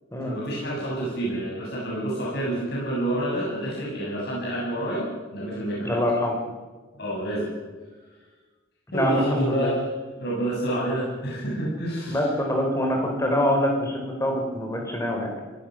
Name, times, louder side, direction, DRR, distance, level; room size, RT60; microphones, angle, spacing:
voice 1, 0.2-5.1 5.3-6.0 7.0-7.5 8.9-9.8 10.2-12.2, right 1 dB, 55° left, -5 dB, 7.2 m, -28 dB
voice 2, 5.8-6.4 8.9-9.7 12.1-15.3, left 1 dB, 15° left, 2 dB, 4.0 m, -25 dB
25.0 x 17.0 x 6.4 m, 1.3 s
head